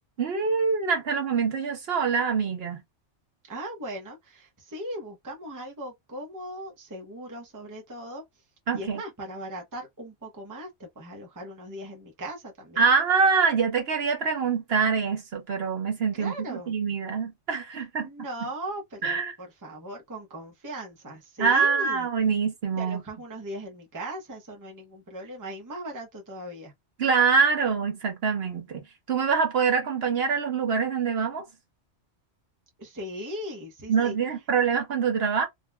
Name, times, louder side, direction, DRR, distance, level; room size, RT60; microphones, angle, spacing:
voice 1, 0.2-2.8 8.7-9.0 12.8-18.1 19.0-19.3 21.4-23.0 27.0-31.5 33.9-35.5, right 5 dB, 60° right, 1.0 m, -25 dB
voice 2, 3.5-8.2 8.7-12.8 16.1-16.7 18.0-22.1 22.8-26.7 32.8-34.2, right 1 dB, 20° right, 0.7 m, -38 dB
3.7 x 2.3 x 2.2 m
omnidirectional pair, 1.2 m